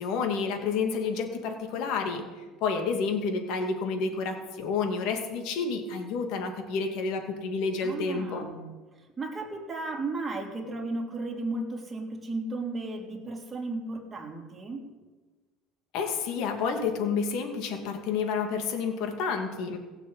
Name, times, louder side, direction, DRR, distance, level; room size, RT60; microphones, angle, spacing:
voice 1, 0.0-2.2 2.6-8.5 15.9-19.8, left 5 dB, 65° left, 4 dB, 2.4 m, -29 dB
voice 2, 7.8-8.7 9.2-14.9, right 2 dB, 20° right, 0 dB, 3.2 m, -34 dB
16.5 x 6.6 x 8.1 m, 1.3 s
supercardioid pair, 105°, 0 cm